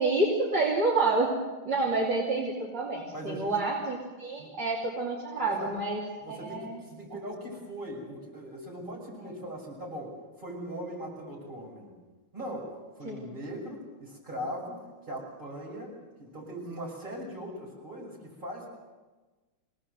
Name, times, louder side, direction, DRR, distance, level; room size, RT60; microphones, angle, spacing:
voice 1, 0.0-1.3 1.7-6.0 6.3-6.8 9.2-9.3 13.0-13.2, right 3 dB, 60° right, -4 dB, 3.7 m, -28 dB
voice 2, 3.1-3.5 4.4-4.5 5.4-5.7 6.2-11.9 12.3-12.7 13.0-18.7, equal, 20° right, -2 dB, 6.6 m, -40 dB
26.0 x 18.5 x 7.9 m, 1.3 s
omnidirectional pair, 2.3 m